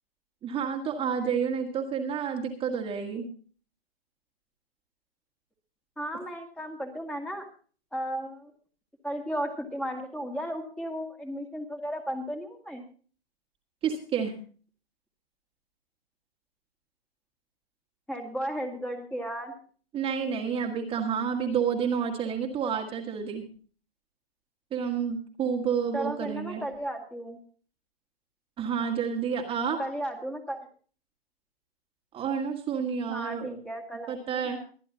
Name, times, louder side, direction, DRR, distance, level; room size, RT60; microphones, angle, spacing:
voice 1, 0.4-3.3 13.8-14.3 19.9-23.4 24.7-26.6 28.6-29.8 32.1-33.6 34.1-34.6, right 7 dB, 15° right, 1 dB, 1.9 m, -29 dB
voice 2, 6.0-7.4 7.9-8.5 9.0-12.8 18.1-19.5 25.9-27.4 29.5-30.7 33.1-34.3, equal, 5° left, 3 dB, 2.1 m, -34 dB
24.0 x 10.5 x 2.8 m, 0.41 s
figure-of-eight pair, 125°, 31 cm